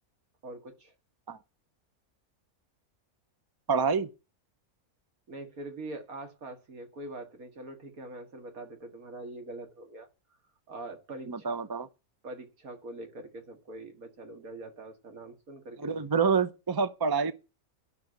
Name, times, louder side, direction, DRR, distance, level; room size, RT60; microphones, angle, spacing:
voice 1, 0.4-0.9 5.3-10.1 10.7-11.6 12.2-16.0, right 2 dB, 75° right, 2.4 m, -43 dB
voice 2, 3.7-4.1 11.3-11.9 15.8-17.3, right 5 dB, 30° right, 0.4 m, -27 dB
11.0 x 6.1 x 7.8 m
omnidirectional pair, 1.5 m